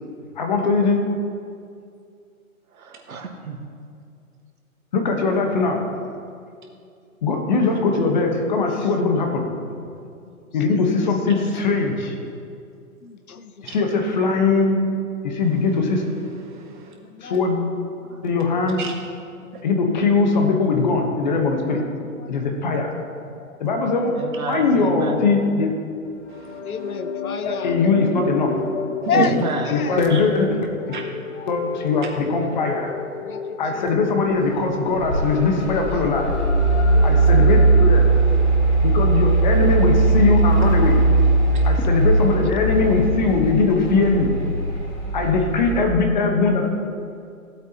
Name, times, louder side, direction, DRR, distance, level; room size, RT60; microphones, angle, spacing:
voice 1, 0.4-1.0 4.9-5.8 7.2-9.4 10.5-12.1 13.6-14.8 15.2-16.0 17.2-17.6 18.2-18.8 19.6-21.8 22.3-22.9 23.6-24.1 24.5-25.7 27.4-28.6 29.7-30.6 31.5-32.9 33.6-36.3 37.0-38.1 38.8-41.0 41.6-44.3 45.1-46.7, left 4 dB, 30° left, 2 dB, 1.2 m, -20 dB
voice 2, 2.7-3.6 18.0-18.2 24.1-25.2 29.1-29.7, right 4 dB, 75° right, 3 dB, 1.6 m, -29 dB
voice 3, 13.0-13.7 17.0-17.4 21.6-22.3 22.9-23.0 23.5-23.6 24.7-25.0 26.6-27.8 29.1-29.4 29.6-30.0 30.3-30.5 33.2-33.9 40.9-41.0 41.8-41.9 45.2-45.5, left 7 dB, 80° left, 10 dB, 0.9 m, -30 dB
voice 4, 16.4-16.9 18.8-18.9 26.3-26.6 29.0-29.3 30.1-30.2 30.9-31.0 36.6-37.3 38.1-38.5, right 7 dB, 35° right, 1 dB, 1.3 m, -32 dB
sound 1, 26.1-37.9, left 5 dB, 55° left, 0.8 m, -32 dB
Mechanical fan, 34.5-45.8, right 3 dB, 10° left, 2.1 m, -19 dB
16.0 x 8.0 x 2.9 m, 2.4 s
hypercardioid pair, 160°, 43 cm